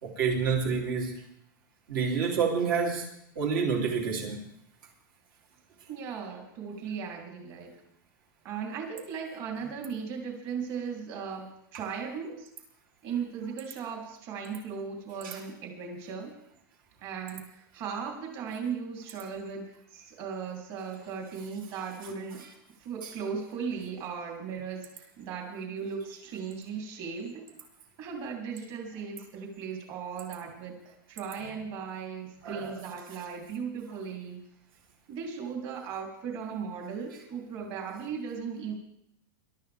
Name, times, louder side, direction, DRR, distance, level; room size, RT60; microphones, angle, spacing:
voice 1, 0.0-1.1 1.9-3.1 3.3-4.4 15.2-15.4 23.0-23.1 32.4-32.7, right 6 dB, 75° right, -1 dB, 3.3 m, -28 dB
voice 2, 5.9-7.7 8.4-12.5 13.0-16.3 17.0-22.5 22.8-27.5 28.0-34.4 35.1-38.7, right 6 dB, 45° right, 0 dB, 3.4 m, -37 dB
22.5 x 12.5 x 3.6 m, 0.76 s
supercardioid pair, 135°, 11 cm